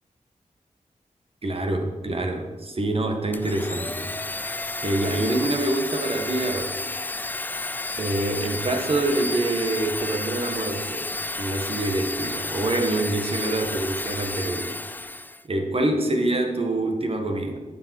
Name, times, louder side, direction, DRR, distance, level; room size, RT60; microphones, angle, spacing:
voice 1, 1.4-4.5 4.8-6.8 8.0-11.1 11.4-14.8 15.4-17.6, right 2 dB, 45° right, 4 dB, 1.4 m, -26 dB
Domestic sounds home sounds, 3.3-15.4, left 2 dB, 15° left, 0.3 m, -31 dB
10.5 x 6.8 x 6.0 m, 1.3 s
wide cardioid pair, 75°, 13 cm